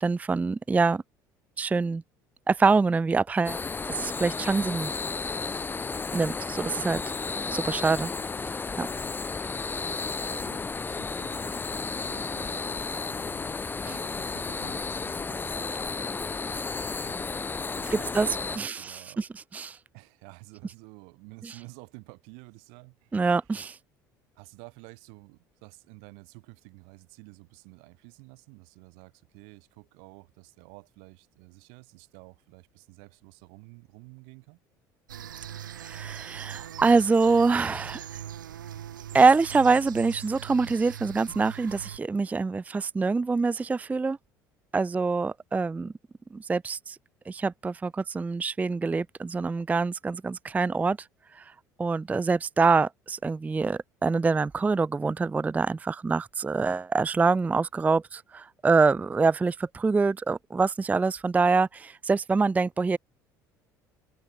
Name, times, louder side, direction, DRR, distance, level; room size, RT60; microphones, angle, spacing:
voice 1, 0.0-1.0 1.6-2.0 2.5-3.6 3.9-4.9 6.1-7.0 7.5-8.1 8.8-8.9 13.9-14.0 17.9-18.3 18.6-19.3 19.5-19.8 21.4-21.5 23.1-23.8 35.8-38.1 39.1-44.2 44.7-45.9 46.3-47.0 47.3-51.0 51.4-51.5 51.8-63.0, right 4 dB, 15° right, 0.4 m, -25 dB
sound 1, 3.4-18.6, left 4 dB, 20° left, 0.8 m, -33 dB
voice 2, 9.6-16.0 17.0-17.4 17.7-19.3 19.9-23.3 24.3-34.6, right 40 dB or more, 70° right, 2.5 m, -51 dB
sound 2, 35.1-42.0, right 10 dB, 90° right, 1.0 m, -41 dB
hypercardioid pair, 65°, 10 cm